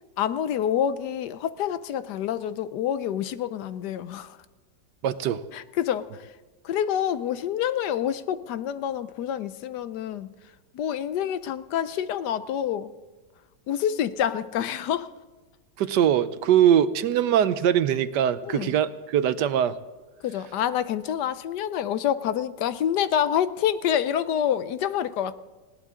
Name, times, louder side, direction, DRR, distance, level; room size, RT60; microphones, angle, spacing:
voice 1, 0.2-4.4 5.5-6.3 6.6-10.3 10.7-12.9 13.7-15.1 18.4-18.7 20.2-25.3, left 9 dB, 75° left, 14 dB, 1.2 m, -27 dB
voice 2, 5.0-5.4 15.8-19.8, right 10 dB, 75° right, 14 dB, 1.3 m, -22 dB
20.0 x 17.5 x 3.7 m, 1.3 s
omnidirectional pair, 1.9 m